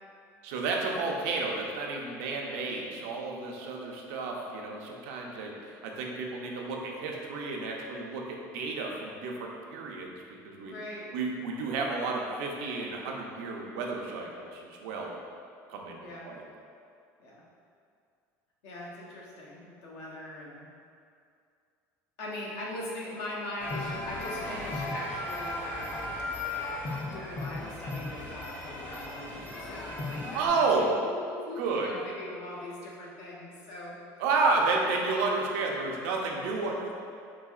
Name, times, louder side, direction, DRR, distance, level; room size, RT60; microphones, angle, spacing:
voice 1, 0.4-10.7 11.1-15.2 15.7-16.0 16.2-16.4 30.3-31.0 31.6-31.9 34.2-36.9, right 3 dB, 85° right, 0 dB, 0.5 m, -31 dB
voice 2, 10.6-11.1 16.0-16.3 17.2-17.4 18.6-20.7 22.2-26.2 26.9-34.0, left 1 dB, 80° left, -4 dB, 0.7 m, -41 dB
sound 1, 23.6-30.5, left 2 dB, 25° left, 0.5 m, -36 dB
3.9 x 2.7 x 2.3 m, 2.4 s
cardioid pair, 135°, 7 cm